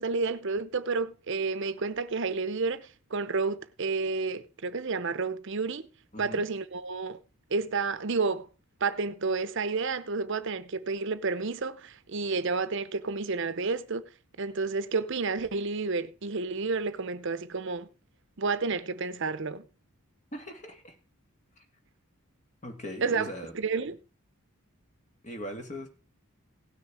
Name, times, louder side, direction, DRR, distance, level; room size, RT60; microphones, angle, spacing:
voice 1, 0.0-5.9 6.2-7.2 7.5-8.5 8.8-14.0 14.4-17.9 18.4-19.6 23.0-23.3 23.5-24.0, right 4 dB, 55° right, 0.7 m, -30 dB
voice 2, 6.1-6.4 20.3-21.0 21.6-21.7 22.6-23.5 25.2-25.9, equal, 35° left, 2.0 m, -40 dB
17.0 x 6.5 x 4.7 m
head